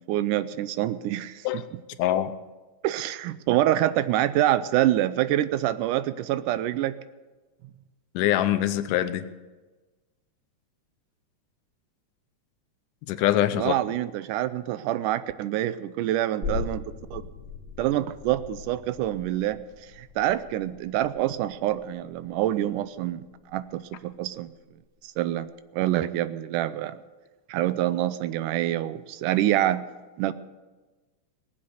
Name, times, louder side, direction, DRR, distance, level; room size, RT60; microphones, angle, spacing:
voice 1, 0.0-1.6 2.8-7.0 13.6-16.8 17.1-17.2 17.8-19.6 20.0-24.5 25.0-27.0 27.5-29.8 30.2-30.3, right 13 dB, 80° right, 14 dB, 2.1 m, -26 dB
voice 2, 2.0-2.3 8.1-9.2 13.1-13.7, left 13 dB, 80° left, 10 dB, 2.3 m, -23 dB
sound 1, 16.4-23.7 24.1-24.2, left 6 dB, 25° right, 3.8 m, -39 dB
18.5 x 7.7 x 7.9 m, 1.2 s
omnidirectional pair, 3.7 m